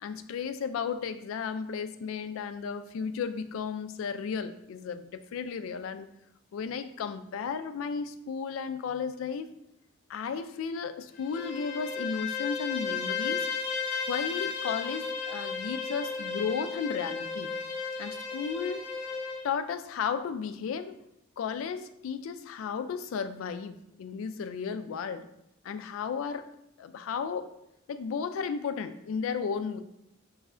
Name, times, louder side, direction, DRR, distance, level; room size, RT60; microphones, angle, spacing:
voice 1, 0.0-6.1 6.5-9.5 10.1-13.5 14.1-17.5 18.0-18.9 19.4-20.9 21.4-25.3 25.6-26.5 26.8-27.5 27.9-29.8, left 6 dB, 75° left, 10 dB, 0.3 m, -34 dB
Bowed string instrument, 11.1-19.5, left 5 dB, 40° left, 0.8 m, -34 dB
4.8 x 3.1 x 2.4 m, 0.81 s
head